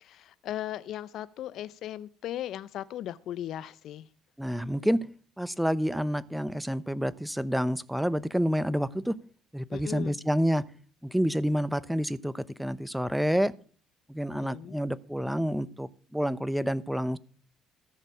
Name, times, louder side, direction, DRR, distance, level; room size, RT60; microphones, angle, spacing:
voice 1, 0.0-4.1 9.7-10.2 14.4-14.8, left 12 dB, 65° left, 17 dB, 0.5 m, -37 dB
voice 2, 4.4-5.0 5.4-9.2 9.5-10.6 11.0-13.5 14.1-17.2, equal, 5° right, 17 dB, 0.8 m, -28 dB
14.5 x 6.7 x 6.1 m, 0.43 s
supercardioid pair, 65°, 0 cm